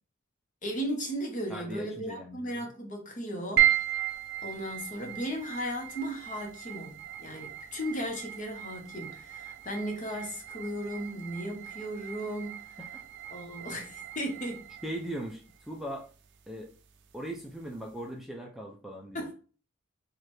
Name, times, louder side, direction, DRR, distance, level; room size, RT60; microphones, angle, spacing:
voice 1, 0.6-3.7 4.4-12.6 13.3-14.7 19.1-19.3, equal, 40° left, 1.0 m, -36 dB
voice 2, 1.5-2.6 12.8-12.9 14.8-16.1 16.5-16.7 17.1-19.3, right 1 dB, ahead, 0.4 m, -39 dB
sound 1, 3.6-18.0, right 13 dB, 55° right, 0.5 m, -35 dB
4.3 x 2.5 x 3.2 m
head